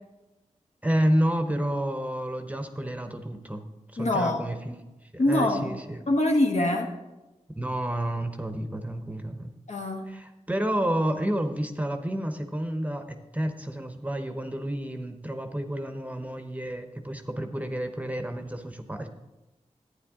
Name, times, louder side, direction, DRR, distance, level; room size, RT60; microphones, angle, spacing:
voice 1, 0.8-3.6 3.9-4.7 5.1-6.0 7.5-9.5 10.1-19.1, right 1 dB, 10° right, 7 dB, 0.9 m, -30 dB
voice 2, 4.0-4.4 5.2-5.7 6.1-6.9 9.7-10.0, left 1 dB, 65° left, 2 dB, 1.4 m, -24 dB
11.5 x 9.3 x 3.7 m, 1.0 s
wide cardioid pair, 75°, 13 cm